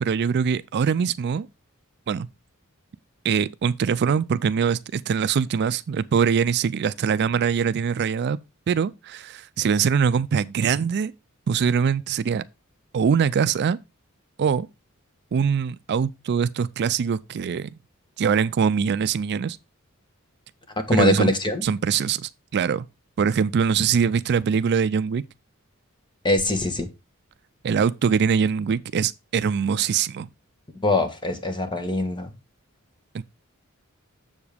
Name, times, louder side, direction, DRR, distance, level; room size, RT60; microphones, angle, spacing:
voice 1, 0.0-1.5 2.1-2.3 3.2-8.4 8.7-11.1 11.5-12.4 12.9-13.8 14.4-14.7 15.3-17.7 18.2-19.6 20.9-21.3 21.6-22.9 23.2-25.2 27.6-30.3 33.1-33.2, right 6 dB, 50° right, 0.4 m, -23 dB
voice 2, 20.9-21.6 26.2-26.9 30.8-32.3, left 1 dB, 20° left, 1.3 m, -22 dB
7.2 x 7.1 x 3.4 m
head